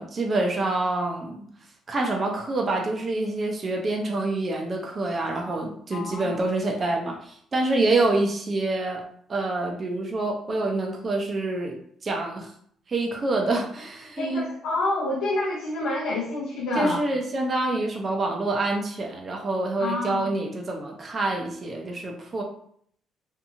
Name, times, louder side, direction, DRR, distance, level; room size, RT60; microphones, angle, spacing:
voice 1, 0.0-1.4 1.9-9.0 9.3-12.5 12.9-14.5 16.8-22.4, right 2 dB, 35° right, 1 dB, 0.5 m, -26 dB
voice 2, 5.9-6.4 14.2-17.0 19.8-20.3, left 2 dB, 85° left, -6 dB, 0.6 m, -28 dB
2.8 x 2.5 x 2.5 m, 0.64 s
cardioid pair, 90°, 0 cm